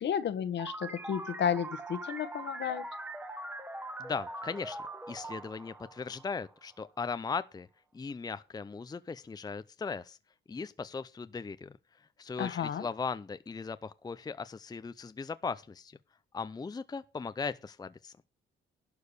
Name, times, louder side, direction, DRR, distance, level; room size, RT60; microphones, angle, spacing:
voice 1, 0.0-2.8 12.4-12.9, left 8 dB, 65° left, 1.5 m, -32 dB
sound 1, 0.6-6.8, right 2 dB, 10° right, 1.3 m, -42 dB
voice 2, 4.0-4.8 5.1-7.7 7.9-10.2 10.5-11.7 12.2-16.0 16.3-18.1, left 5 dB, 20° left, 0.6 m, -38 dB
11.5 x 4.8 x 8.3 m
cardioid pair, 90°, 20 cm